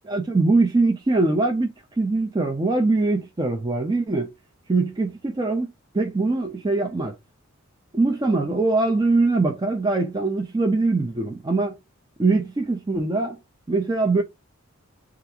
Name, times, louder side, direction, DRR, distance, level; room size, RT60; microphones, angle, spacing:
voice 1, 0.0-4.3 4.7-7.1 7.9-11.8 12.2-13.4 13.7-14.2, right 3 dB, 20° right, 0.4 m, -22 dB
3.4 x 2.4 x 2.8 m
head